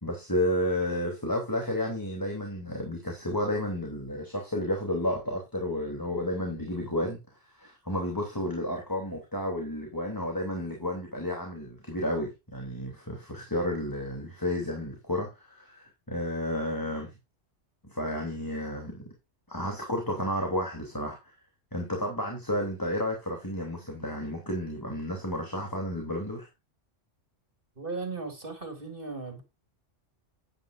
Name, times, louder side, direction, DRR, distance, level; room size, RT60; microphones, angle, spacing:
voice 1, 0.0-7.2 7.5-17.1 17.8-19.0 19.5-21.2 21.7-26.5, left 1 dB, 15° left, 3.1 m, -31 dB
voice 2, 27.8-29.4, right 4 dB, 45° right, 3.2 m, -36 dB
12.0 x 9.5 x 2.6 m
omnidirectional pair, 1.3 m